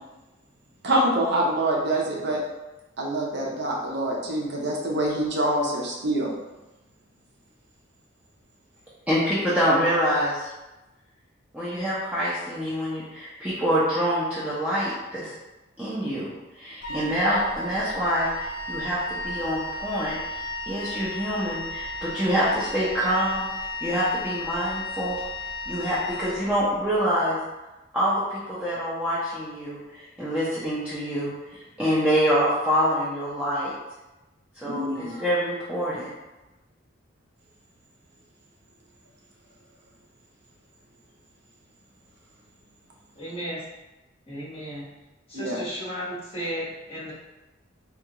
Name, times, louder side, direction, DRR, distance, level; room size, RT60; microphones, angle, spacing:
voice 1, 0.8-2.4 3.0-6.3 17.0-17.1 34.6-35.2 45.3-45.6, right 1 dB, 60° right, -2 dB, 0.6 m, -25 dB
voice 2, 9.1-10.5 11.5-15.3 15.8-23.5 23.8-25.2 25.7-27.4 27.9-33.7 34.6-36.1, equal, 5° right, -10 dB, 0.6 m, -26 dB
Wind instrument woodwind instrument, 16.8-26.9, left 1 dB, 45° left, 0.4 m, -34 dB
voice 3, 43.2-43.6 44.3-44.9 45.3-47.1, equal, 30° left, -7 dB, 1.1 m, -34 dB
3.5 x 2.3 x 2.9 m, 1.0 s
head